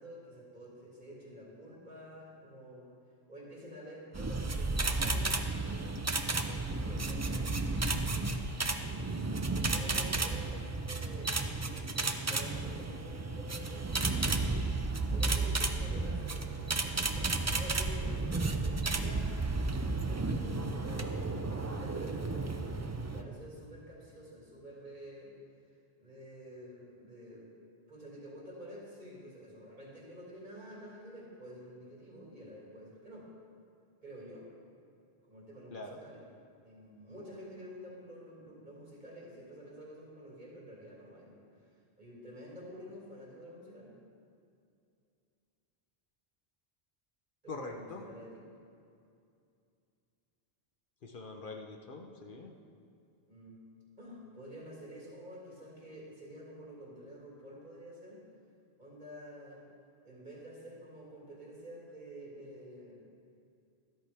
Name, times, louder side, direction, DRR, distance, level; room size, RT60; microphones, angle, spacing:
voice 1, 0.0-2.9 3.3-5.5 6.7-7.5 8.6-14.0 15.1-19.3 20.0-25.3 26.0-27.5 27.9-33.3 34.0-34.5 35.3-36.2 36.6-41.4 42.0-44.0 47.4-48.5 53.3-53.6 54.0-58.2 58.8-59.6 60.0-63.1, equal, 45° right, -4 dB, 2.7 m, -49 dB
sound 1, 4.1-23.2, right 3 dB, 25° right, 0.3 m, -33 dB
voice 2, 47.5-48.0 51.0-52.5, left 3 dB, 55° left, 2 dB, 1.0 m, -43 dB
13.5 x 12.5 x 3.5 m, 2.5 s
omnidirectional pair, 1.1 m